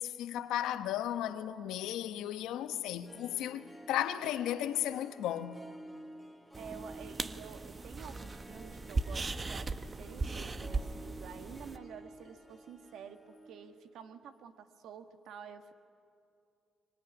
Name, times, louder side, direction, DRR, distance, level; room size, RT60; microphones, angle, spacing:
voice 1, 0.0-5.6, left 11 dB, 90° left, 1.0 m, -35 dB
Harp, 2.9-13.9 14.1-14.2, right 1 dB, ahead, 2.1 m, -52 dB
sound 1, 6.5-11.8, right 3 dB, 30° right, 1.0 m, -38 dB
voice 2, 6.6-15.7, right 7 dB, 80° right, 1.6 m, -50 dB
24.0 x 21.5 x 9.9 m
cardioid pair, 90°, 0 cm